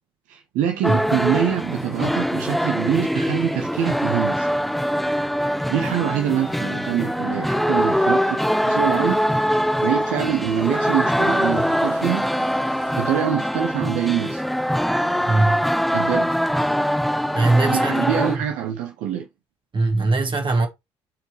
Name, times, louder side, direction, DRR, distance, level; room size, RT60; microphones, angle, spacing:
voice 1, 0.3-4.5 5.7-8.4 8.7-9.5 9.8-12.3 12.9-14.4 15.9-16.3 17.7-19.3, right 10 dB, 60° right, 0.7 m, -24 dB
sound 1, 0.8-18.4, equal, ahead, 0.6 m, -23 dB
sound 2, 3.3-13.2, right 6 dB, 85° right, 1.6 m, -46 dB
voice 2, 15.3-15.7 17.3-18.4 19.7-20.7, right 2 dB, 35° right, 1.6 m, -21 dB
7.2 x 4.5 x 3.0 m
figure-of-eight pair, 50°, 15 cm